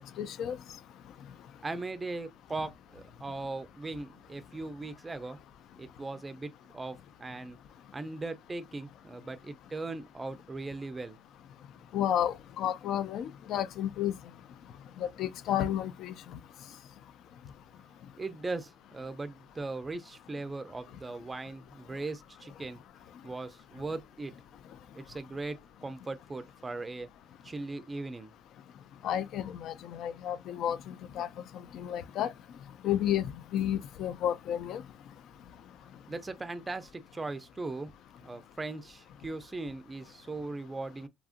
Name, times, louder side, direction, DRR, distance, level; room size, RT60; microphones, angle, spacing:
voice 1, 0.2-0.6 11.9-14.1 15.0-16.1 29.0-31.3 31.7-32.3 32.8-34.8, left 10 dB, 65° left, 0.3 m, -31 dB
voice 2, 1.6-5.4 5.8-7.6 7.9-11.2 18.2-22.8 23.2-24.3 25.0-27.1 27.4-28.3 36.1-37.9 38.2-41.1, right 3 dB, 20° right, 0.4 m, -39 dB
2.8 x 2.5 x 2.4 m
cardioid pair, 105°, 0 cm